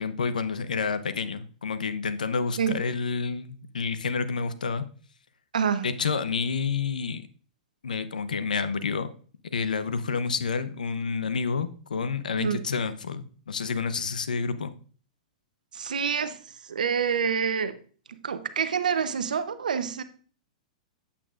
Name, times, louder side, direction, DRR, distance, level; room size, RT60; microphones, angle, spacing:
voice 1, 0.0-4.8 5.8-7.3 7.8-9.1 9.5-14.7, left 5 dB, 85° left, 12 dB, 0.7 m, -29 dB
voice 2, 5.5-5.9 12.4-12.6 15.7-16.4 16.7-17.7 18.1-20.0, right 7 dB, 80° right, 12 dB, 0.8 m, -27 dB
8.4 x 8.3 x 2.5 m, 0.42 s
hypercardioid pair, 115°, 4 cm